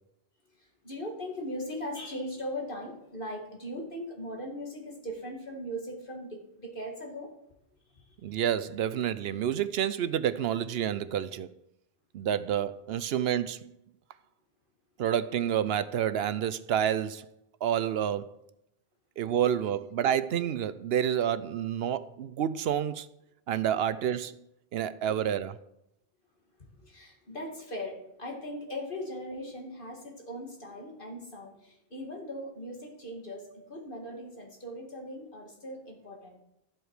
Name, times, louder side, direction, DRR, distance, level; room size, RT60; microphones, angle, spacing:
voice 1, 0.6-7.3 7.9-8.2 26.8-36.4, equal, 55° left, 2.6 m, -39 dB
voice 2, 8.2-11.5 12.1-13.7 15.0-17.3 17.6-18.3 19.2-23.1 23.5-24.4 24.7-25.6, right 9 dB, 75° right, 0.8 m, -29 dB
12.5 x 7.9 x 4.9 m
omnidirectional pair, 1.1 m